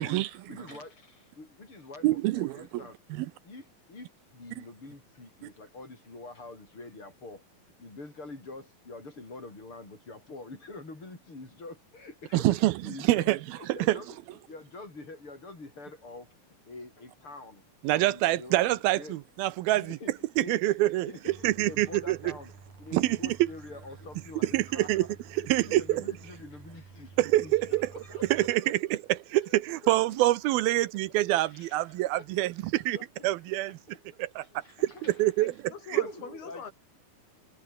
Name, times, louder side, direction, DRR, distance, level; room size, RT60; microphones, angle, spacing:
voice 1, 0.0-3.0 3.4-7.5 7.8-14.2 14.5-16.4 16.7-17.6 17.9-19.2 19.7-22.5 22.8-28.7 29.4-29.6 29.9-30.0 31.5-32.7 32.9-33.1 34.4-35.2 36.0-36.7, left 2 dB, 35° left, 8.3 m, -46 dB
voice 2, 2.0-2.8 3.1-3.3 12.3-12.7 13.0-13.4 13.7-14.0 17.8-20.0 20.4-21.1 21.4-22.3 22.9-23.4 24.4-25.1 25.5-26.0 27.2-27.9 28.3-28.8 29.3-33.0 33.2-33.7 34.2-34.5 34.8-36.0, right 17 dB, 80° right, 2.6 m, -26 dB
sound 1, 21.3-28.6, right 5 dB, 55° right, 6.6 m, -51 dB
voice 3, 35.4-36.7, left 7 dB, 85° left, 5.9 m, -43 dB
omnidirectional pair, 4.4 m